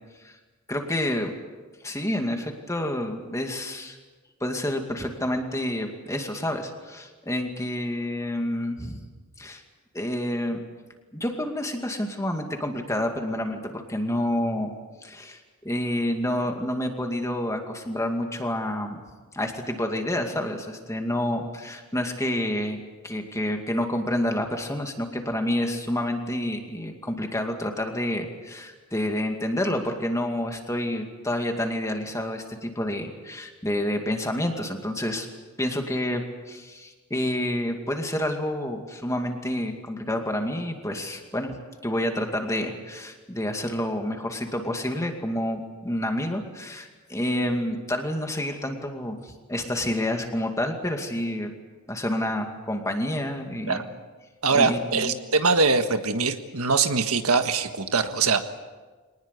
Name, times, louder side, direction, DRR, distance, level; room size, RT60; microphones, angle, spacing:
voice 1, 0.7-1.3 1.8-4.0 4.4-9.1 9.4-9.6 9.9-10.6 11.1-14.7 15.0-15.4 15.6-19.0 19.3-35.3 35.6-51.5 51.9-53.8 54.5-55.2, left 1 dB, 15° left, 4 dB, 2.3 m, -29 dB
voice 2, 54.4-58.4, right 4 dB, 80° right, 8 dB, 1.6 m, -22 dB
25.0 x 19.5 x 8.3 m, 1.3 s
head